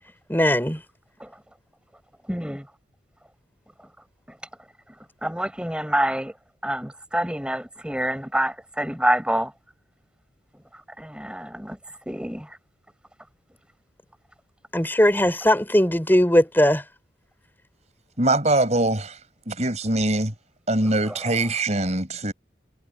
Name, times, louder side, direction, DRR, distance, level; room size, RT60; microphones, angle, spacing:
voice 1, 0.3-0.8 14.7-16.8, left 1 dB, 10° left, 4.2 m, -19 dB
voice 2, 2.3-2.7 5.2-6.3 6.6-9.5 11.0-11.8 12.1-12.6, right 1 dB, 5° right, 5.5 m, -26 dB
voice 3, 18.2-19.2 19.5-20.3 20.7-22.3, right 2 dB, 40° right, 5.8 m, -22 dB
head